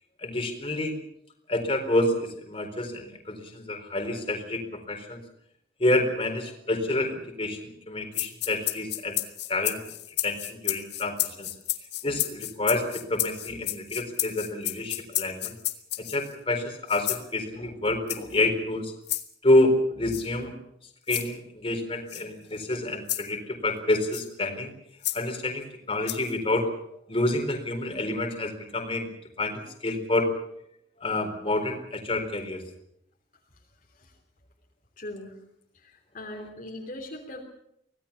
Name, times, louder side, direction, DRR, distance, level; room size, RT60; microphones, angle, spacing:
voice 1, 0.2-0.9 1.5-4.6 4.9-5.2 5.8-7.6 7.9-9.2 9.5-9.8 10.2-11.5 12.0-15.5 16.1-18.9 19.4-20.5 21.1-24.7 25.1-26.7 27.1-29.1 29.4-30.3 31.0-32.6, left 2 dB, 30° left, 3 dB, 4.2 m, -28 dB
sound 1, 8.1-16.3 16.9-17.3 18.1-18.4 19.1-19.2 20.1-20.2 21.1-21.3 22.1-22.2 23.1-23.3 24.1-24.3 25.0-25.2 26.1-26.3, left 15 dB, 60° left, 1.8 m, -31 dB
voice 2, 35.0-35.4 35.7-37.4, left 1 dB, 45° left, 0 dB, 3.2 m, -40 dB
25.0 x 18.0 x 7.1 m, 0.77 s
head